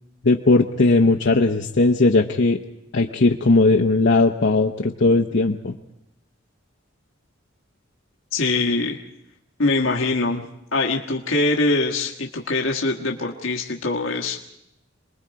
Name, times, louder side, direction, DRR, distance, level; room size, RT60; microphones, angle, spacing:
voice 1, 0.2-2.6 2.9-5.7, left 3 dB, 60° left, 1 dB, 0.9 m, -18 dB
voice 2, 8.3-9.0 9.6-10.4 10.7-14.4, left 2 dB, 85° left, 0 dB, 1.5 m, -23 dB
27.5 x 21.0 x 4.7 m, 0.84 s
head